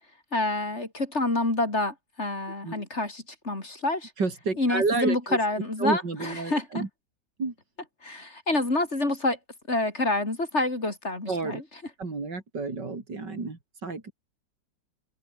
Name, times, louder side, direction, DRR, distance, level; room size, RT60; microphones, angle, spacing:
voice 1, 0.3-4.1 4.6-6.8 8.0-9.4 9.7-11.6, left 2 dB, 35° left, 4.1 m, -27 dB
voice 2, 4.2-5.4 5.8-6.9 7.4-7.5 11.3-11.6 12.0-14.1, right 3 dB, 70° right, 4.4 m, -30 dB
omnidirectional pair, 2.0 m